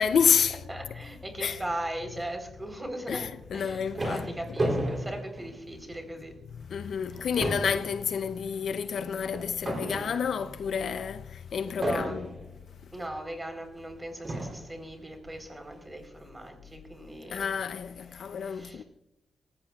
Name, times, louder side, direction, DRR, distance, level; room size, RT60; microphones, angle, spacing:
voice 1, 0.0-0.6 1.4-1.6 3.1-4.3 6.5-12.3 17.3-18.8, left 7 dB, 70° left, 0.6 m, -29 dB
voice 2, 0.7-3.3 3.5-6.3 11.8-12.2 12.9-17.5 18.2-18.8, right 1 dB, 15° right, 3.9 m, -39 dB
sound 1, 3.4-6.1 6.5-6.7 7.0-10.6 11.8-12.6 13.4-13.5 14.2-14.8, right 1 dB, 35° right, 3.4 m, -34 dB
19.0 x 16.0 x 2.4 m
cardioid pair, 85°, 0 cm